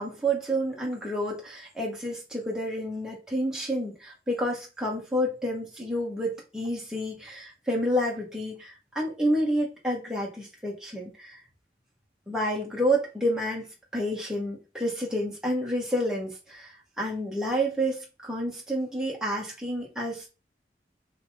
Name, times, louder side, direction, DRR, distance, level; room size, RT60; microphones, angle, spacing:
voice 1, 0.0-11.4 12.3-13.7 13.9-20.3, equal, 5° right, -4 dB, 2.1 m, -29 dB
4.6 x 4.0 x 5.2 m, 0.30 s
head